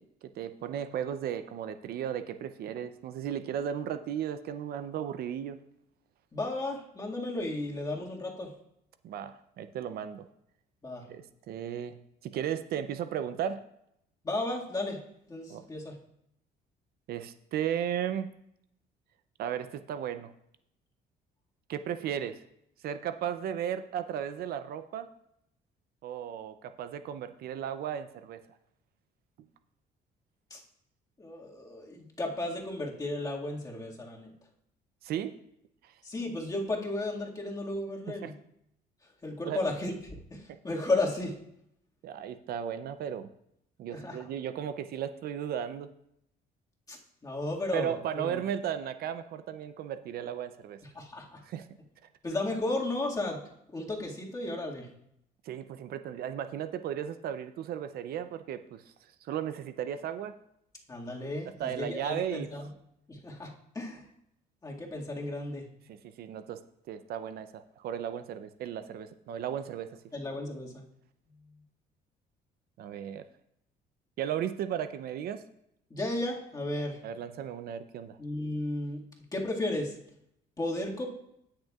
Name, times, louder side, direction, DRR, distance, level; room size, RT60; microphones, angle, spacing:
voice 1, 0.0-5.6 9.0-10.3 11.1-13.6 15.5-15.7 17.1-18.3 19.4-20.3 21.7-22.4 22.8-25.1 26.0-28.4 35.0-35.4 35.8-35.9 38.2-38.3 39.5-39.6 40.5-40.6 42.0-43.3 43.8-45.9 47.7-50.8 51.4-51.7 55.4-58.8 59.2-60.3 61.6-62.5 65.9-66.6 66.9-70.0 72.8-73.3 74.2-75.4 77.0-78.2, right 9 dB, 65° right, 10 dB, 0.5 m, -35 dB
voice 2, 6.3-8.5 10.8-11.0 14.2-15.0 15.3-16.0 30.5-30.6 31.2-34.3 36.0-38.3 39.2-41.4 43.9-44.3 46.9-48.4 50.9-51.4 52.2-53.4 53.7-54.9 60.9-62.7 63.1-64.0 64.6-65.7 70.1-70.8 75.9-77.0 78.2-79.0 79.3-80.0 80.6-81.1, left 2 dB, 20° left, -1 dB, 1.9 m, -34 dB
19.0 x 6.5 x 2.4 m, 0.76 s
cardioid pair, 110°, 17 cm